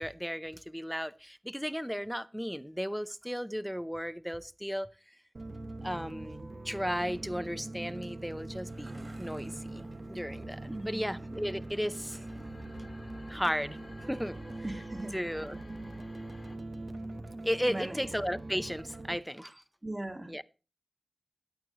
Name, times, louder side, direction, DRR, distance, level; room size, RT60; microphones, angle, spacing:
voice 1, 0.0-4.9 5.8-12.2 13.3-13.8 14.1-14.4 15.1-15.6 17.4-19.5 20.3-20.4, equal, ahead, 0.7 m, -35 dB
sound 1, 5.3-19.2, right 2 dB, 60° right, 0.9 m, -42 dB
sound 2, 7.9-11.4, right 1 dB, 45° right, 5.9 m, -55 dB
sound 3, 9.3-16.6, left 2 dB, 60° left, 1.4 m, -53 dB
voice 2, 10.7-11.4 14.6-15.2 17.7-18.1 19.4-19.5 19.8-20.3, right 1 dB, 25° right, 2.2 m, -39 dB
15.5 x 9.1 x 2.9 m
cardioid pair, 40°, 0 cm